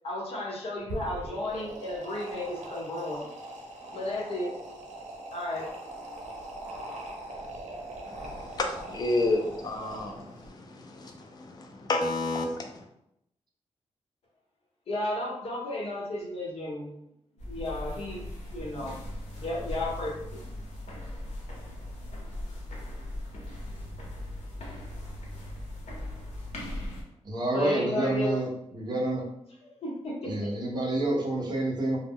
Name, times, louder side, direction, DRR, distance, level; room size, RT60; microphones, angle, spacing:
voice 1, 0.0-3.3 3.9-4.5 5.3-5.7 14.9-16.9 17.5-18.2 18.5-19.0 19.4-20.5 27.5-28.4 29.8-30.3, left 1 dB, 55° left, -4 dB, 0.9 m, -33 dB
sound 1, 0.8-10.5, right 1 dB, 90° right, 0.5 m, -41 dB
voice 2, 8.1-12.8, left 2 dB, 35° left, 3 dB, 0.4 m, -31 dB
sound 2, 17.4-27.0, left 1 dB, 85° left, 0.8 m, -39 dB
voice 3, 27.3-28.5 28.7-29.2 30.2-32.0, right 2 dB, 40° right, -1 dB, 0.5 m, -28 dB
2.1 x 2.0 x 3.5 m, 0.80 s
wide cardioid pair, 175°, 12 cm